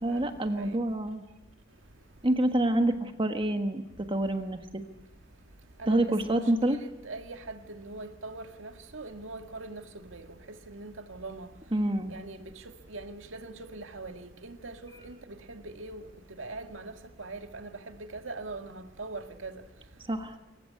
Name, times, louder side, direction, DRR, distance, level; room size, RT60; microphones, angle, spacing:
voice 1, 0.0-1.2 2.2-4.8 5.9-6.8 11.7-12.1 20.1-20.3, right 1 dB, 25° right, 1.4 m, -27 dB
voice 2, 5.8-10.3 10.7-11.5 12.1-12.6 12.9-14.8 15.0-16.0 16.4-19.6, right 3 dB, 90° right, 1.9 m, -42 dB
25.5 x 15.0 x 9.8 m
head